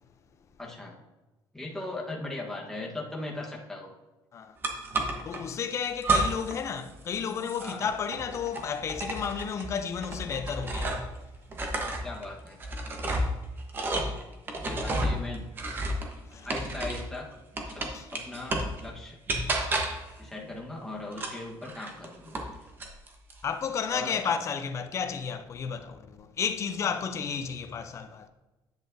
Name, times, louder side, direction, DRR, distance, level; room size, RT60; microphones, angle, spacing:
voice 1, 0.6-1.0 1.5-3.9 7.6-7.8 12.0-12.6 14.6-15.5 16.4-19.2 20.2-22.3 23.9-24.2, left 2 dB, 5° left, 1.2 m, -38 dB
sound 1, 4.6-5.4 6.0-6.6 6.9-11.2 11.5-17.2 17.6-18.8 19.3-20.1 21.1-22.5 22.8-23.4, right 2 dB, 25° right, 1.0 m, -31 dB
voice 2, 5.2-11.1 13.1-13.3 16.3-16.5 17.9-18.1 23.4-28.3, left 7 dB, 30° left, 0.6 m, -32 dB
10.5 x 8.4 x 2.7 m
cardioid pair, 170°, 9 cm